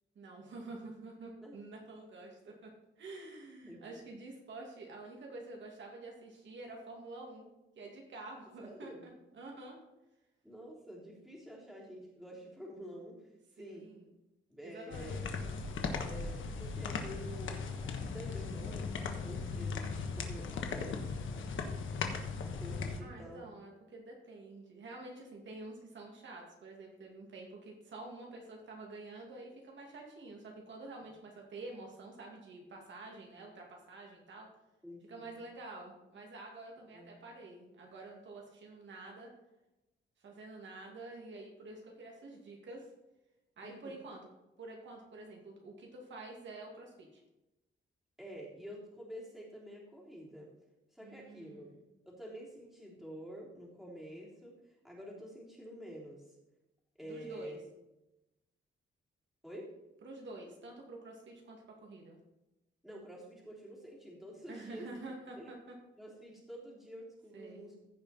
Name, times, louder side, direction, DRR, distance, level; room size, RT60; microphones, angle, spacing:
voice 1, 0.2-2.7 3.0-7.4 7.8-9.8 13.6-14.1 14.6-15.2 23.0-34.5 35.1-39.3 40.2-42.9 43.6-44.3 44.6-47.2 51.0-51.8 57.0-57.6 60.0-62.2 64.5-65.7 67.3-67.7, right 2 dB, 65° right, 0 dB, 2.3 m, -48 dB
voice 2, 3.6-4.0 8.6-9.0 10.4-13.9 14.5-15.3 16.0-21.0 21.3-21.5 22.4-23.5 34.8-35.3 36.9-37.2 43.6-44.0 48.2-50.5 50.9-51.7 52.0-54.5 54.8-56.3 57.0-57.6 59.4-59.7 62.8-64.9 65.4-65.5 66.0-68.0, equal, ahead, -5 dB, 3.3 m, -49 dB
sound 1, 14.9-23.0, left 4 dB, 75° left, 1.3 m, -38 dB
15.0 x 5.4 x 4.3 m, 0.95 s
wide cardioid pair, 140°, 21 cm